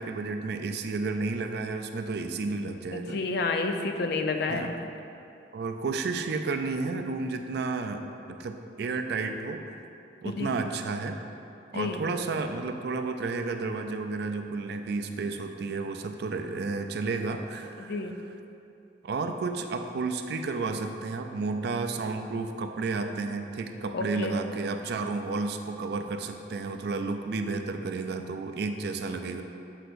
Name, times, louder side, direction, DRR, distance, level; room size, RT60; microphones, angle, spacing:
voice 1, 0.0-3.2 4.5-4.9 5.5-8.0 8.4-9.6 10.2-11.2 11.7-18.3 19.0-29.4, right 3 dB, 60° right, 6 dB, 0.4 m, -32 dB
voice 2, 2.9-4.7 10.2-10.5 11.7-12.0 17.8-18.1 23.9-24.3, left 3 dB, 60° left, 5 dB, 0.4 m, -30 dB
6.5 x 6.1 x 2.5 m, 2.7 s
head